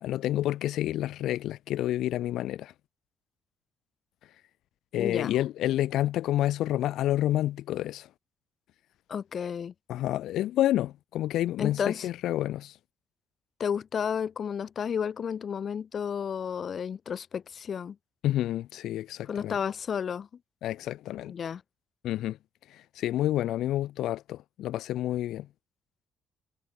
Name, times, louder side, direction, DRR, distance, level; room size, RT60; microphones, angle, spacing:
voice 1, 0.0-2.7 4.9-8.1 9.9-12.8 18.2-19.6 20.6-21.3 22.0-22.4 22.7-25.5, left 13 dB, 75° left, 1.7 m, -29 dB
voice 2, 5.0-5.3 9.1-9.7 11.6-12.1 13.6-18.0 19.2-20.3 21.2-21.6, left 7 dB, 40° left, 3.0 m, -32 dB
cardioid pair, 130°, 0 cm